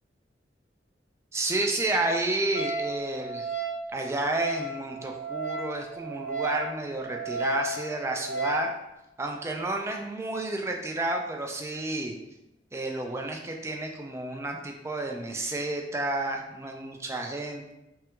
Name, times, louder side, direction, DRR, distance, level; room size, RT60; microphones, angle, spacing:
voice 1, 1.3-3.5 3.9-8.7 9.2-12.2 12.7-17.7, right 2 dB, 15° right, 2 dB, 0.3 m, -31 dB
Wind instrument woodwind instrument, 2.5-8.7, right 2 dB, 70° left, 0.5 m, -34 dB
3.2 x 2.3 x 2.9 m, 0.91 s
head